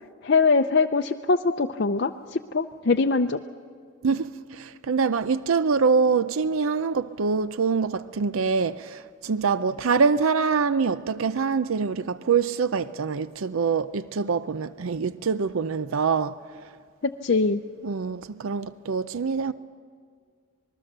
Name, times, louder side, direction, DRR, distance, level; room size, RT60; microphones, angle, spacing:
voice 1, 0.2-3.4 17.0-17.6, left 4 dB, 50° left, 0.5 m, -22 dB
voice 2, 4.0-16.7 17.8-19.5, right 5 dB, 80° right, 0.5 m, -25 dB
26.0 x 20.5 x 6.7 m
head